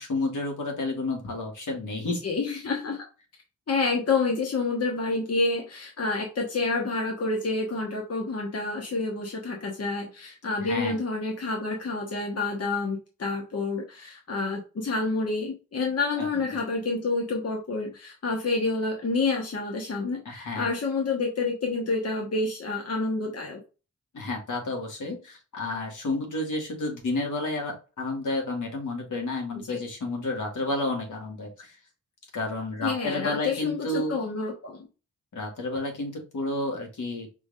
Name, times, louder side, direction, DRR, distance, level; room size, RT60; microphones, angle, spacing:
voice 1, 0.0-2.2 10.6-11.0 16.2-16.3 20.3-20.7 24.1-31.8 32.3-34.2 35.3-37.3, left 2 dB, 75° left, 1 dB, 1.8 m, -31 dB
voice 2, 2.2-3.0 3.7-23.6 29.7-29.8 32.8-34.9, left 3 dB, 50° left, 0 dB, 1.2 m, -28 dB
6.0 x 3.7 x 2.4 m, 0.32 s
wide cardioid pair, 95°, 31 cm